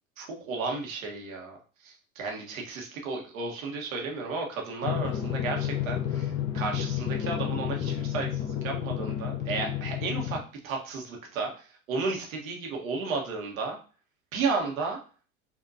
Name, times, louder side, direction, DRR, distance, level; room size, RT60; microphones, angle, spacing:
voice 1, 0.2-1.6 1.8-13.8 14.3-15.0, right 4 dB, 75° right, 1 dB, 1.4 m, -33 dB
Drum, 4.8-10.4, left 10 dB, 45° left, 0.8 m, -31 dB
5.4 x 2.8 x 2.7 m, 0.37 s
hypercardioid pair, 75°, 42 cm